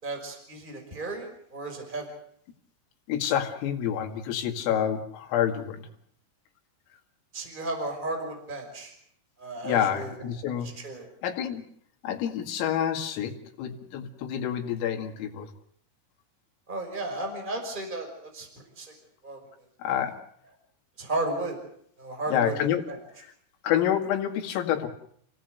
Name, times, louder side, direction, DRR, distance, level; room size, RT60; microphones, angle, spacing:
voice 1, 0.0-2.1 7.3-8.9 9.4-10.3 10.6-11.1 16.7-18.5 18.8-18.9 19.2-19.4 21.0-21.6 22.0-22.5 22.9-23.0, right 2 dB, 10° right, 4 dB, 5.3 m, -34 dB
voice 2, 3.1-5.9 9.6-10.7 11.2-11.6 12.0-15.5 19.8-20.2 22.3-22.8 23.6-24.9, left 9 dB, 85° left, 3 dB, 4.8 m, -28 dB
29.5 x 17.0 x 8.1 m, 0.68 s
omnidirectional pair, 5.8 m